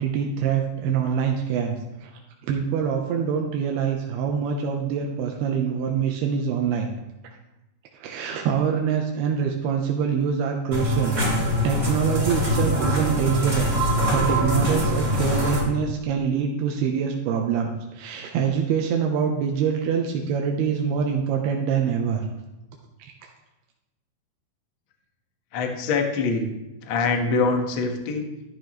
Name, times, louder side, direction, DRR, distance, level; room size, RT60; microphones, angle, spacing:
voice 1, 0.0-2.1 2.4-6.9 7.2-7.3 8.0-22.2 23.2-23.3, right 7 dB, 85° right, 1 dB, 2.8 m, -25 dB
sound 1, 10.7-15.6, equal, 15° right, 4.7 m, -23 dB
voice 2, 25.5-26.5 26.8-28.3, left 4 dB, 75° left, 3 dB, 1.1 m, -24 dB
12.5 x 11.5 x 3.1 m, 0.97 s
omnidirectional pair, 4.6 m